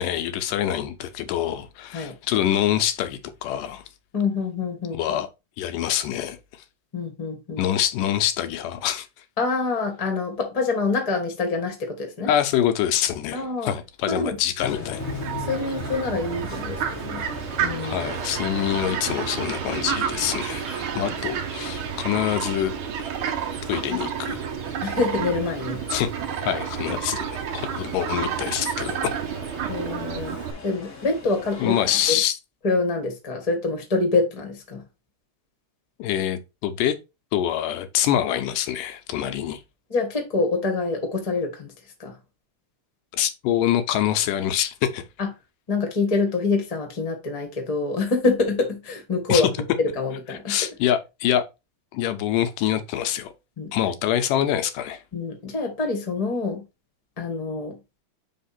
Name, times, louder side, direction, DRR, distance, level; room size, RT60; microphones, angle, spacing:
voice 1, 0.0-3.8 4.9-5.3 5.6-6.4 7.6-9.1 12.2-15.0 17.8-22.7 23.7-24.4 25.9-26.1 26.4-27.3 27.5-29.2 31.6-32.3 36.0-37.0 37.3-39.6 43.1-45.0 49.3-49.4 50.5-51.4 51.9-53.3 53.7-55.0, left 11 dB, 90° left, 2.4 m, -25 dB
voice 2, 4.1-5.2 6.9-7.6 9.4-12.3 13.3-13.7 14.1-14.3 15.4-17.2 17.6-18.1 21.3-21.4 24.8-25.8 29.7-31.7 32.1-32.2 32.6-34.8 39.9-41.7 42.0-42.2 45.2-45.3 45.7-49.5 49.8-50.6 53.6-53.7 55.1-56.6 57.2-57.8, left 3 dB, 25° left, 0.7 m, -26 dB
sound 1, 14.6-32.1, left 4 dB, 70° left, 0.7 m, -40 dB
Fowl, 15.0-30.5, right 8 dB, 80° right, 1.1 m, -30 dB
5.2 x 3.6 x 5.8 m
omnidirectional pair, 3.7 m